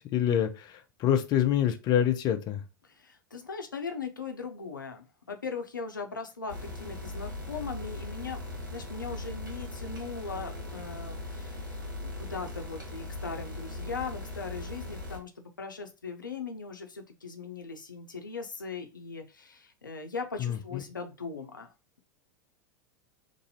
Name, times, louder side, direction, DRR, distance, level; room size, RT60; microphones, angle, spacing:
voice 1, 0.0-2.6 20.4-20.8, left 10 dB, 40° left, 0.6 m, -26 dB
voice 2, 2.8-11.7 12.0-21.7, left 5 dB, 90° left, 0.5 m, -39 dB
sound 1, 6.5-15.2, left 2 dB, 90° right, 1.4 m, -39 dB
3.0 x 2.6 x 4.0 m
figure-of-eight pair, 85°, 10 cm